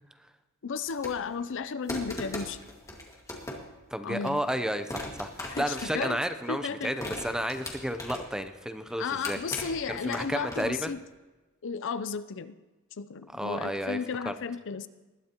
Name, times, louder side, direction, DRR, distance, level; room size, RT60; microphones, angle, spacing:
voice 1, 0.6-2.6 4.0-4.4 5.5-6.2 6.5-6.9 9.0-11.0 11.6-12.6 13.0-14.9, left 5 dB, 60° left, 13 dB, 0.5 m, -34 dB
sound 1, 0.9-1.4 1.9-3.8 4.3-4.5 4.9-6.5 7.0-8.4 8.9-10.9, left 1 dB, 15° left, 1.8 m, -39 dB
voice 2, 3.9-9.4 9.9-10.9 13.3-14.0 14.3-14.4, equal, 5° right, 9 dB, 0.6 m, -32 dB
20.0 x 12.5 x 2.9 m, 1.1 s
head